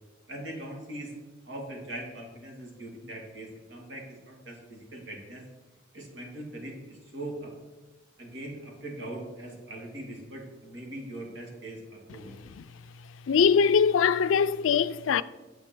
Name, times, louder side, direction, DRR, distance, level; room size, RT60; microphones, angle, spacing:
voice 1, 0.3-1.1 1.5-5.4 5.9-7.5 8.2-12.4, right 1 dB, 65° right, 2.5 m, -41 dB
voice 2, 13.3-15.2, left 6 dB, 85° left, 0.4 m, -22 dB
9.2 x 7.8 x 4.5 m
head